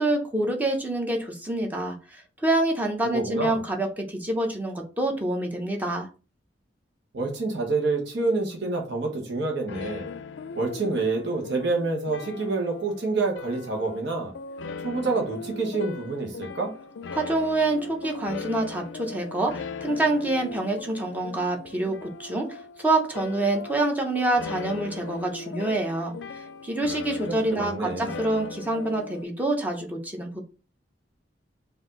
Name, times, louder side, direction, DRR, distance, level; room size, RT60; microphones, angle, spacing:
voice 1, 0.0-6.1 17.1-26.1 26.6-30.4, right 2 dB, 10° right, 1 dB, 0.8 m, -26 dB
voice 2, 3.0-3.6 7.1-10.1 10.5-14.3 14.8-16.7 27.2-28.1, right 3 dB, 75° right, 1 dB, 1.1 m, -27 dB
sound 1, 9.7-29.2, left 4 dB, 80° left, 0.4 m, -39 dB
4.5 x 2.6 x 3.7 m, 0.34 s
head